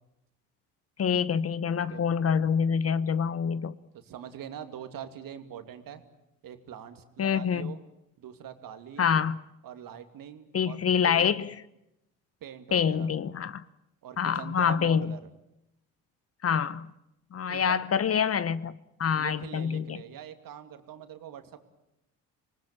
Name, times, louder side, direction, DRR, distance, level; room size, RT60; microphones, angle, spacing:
voice 1, 1.0-3.8 7.2-7.7 9.0-9.4 10.5-11.5 12.7-13.6 14.2-15.1 16.4-16.9 17.3-20.0, left 7 dB, 35° left, 17 dB, 1.0 m, -26 dB
voice 2, 3.9-6.0 6.4-7.8 8.2-9.2 9.6-11.3 12.4-13.1 14.0-15.2 17.5-17.8 19.1-21.6, right 9 dB, 55° right, 8 dB, 2.7 m, -43 dB
26.5 x 19.5 x 8.8 m, 0.86 s
hypercardioid pair, 65°, 40 cm